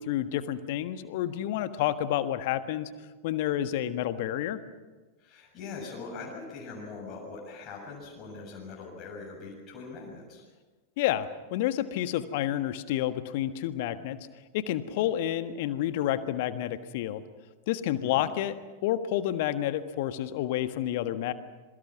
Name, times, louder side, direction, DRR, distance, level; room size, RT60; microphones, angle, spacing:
voice 1, 0.0-2.9 3.2-4.6 11.0-14.2 14.5-17.2 17.7-21.3, left 12 dB, 50° left, 11 dB, 1.5 m, -29 dB
voice 2, 5.2-10.5 18.0-18.3, left 4 dB, 30° left, -2 dB, 7.0 m, -42 dB
27.0 x 23.0 x 6.0 m, 1.2 s
figure-of-eight pair, 90°, 0 cm